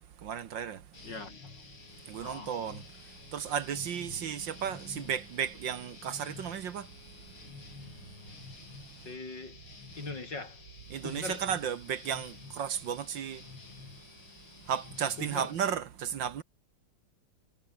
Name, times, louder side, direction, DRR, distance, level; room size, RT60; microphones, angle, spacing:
voice 1, 0.2-0.9 2.1-6.9 7.3-7.4 7.6-7.9 8.5-9.1 10.9-13.5 14.6-16.4, right 8 dB, 65° right, 1.8 m, -35 dB
sound 1, 0.9-15.7, left 4 dB, 80° left, 5.0 m, -50 dB
voice 2, 1.0-1.6 2.2-2.5 9.0-9.6 10.0-10.6 11.0-11.5 15.2-15.5, left 3 dB, 55° left, 5.4 m, -41 dB
omnidirectional pair, 2.3 m